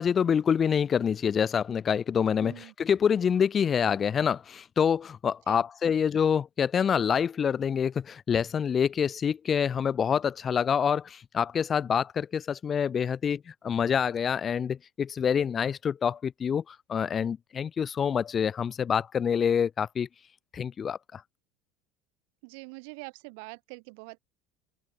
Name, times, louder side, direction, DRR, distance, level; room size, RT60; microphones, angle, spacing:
voice 1, 0.0-2.5 2.8-20.1 20.5-21.2, left 7 dB, 25° left, 0.3 m, -26 dB
voice 2, 2.4-2.7 5.5-5.6 22.4-24.2, right 34 dB, 75° right, 0.5 m, -44 dB
open air
cardioid pair, 155°, 0 cm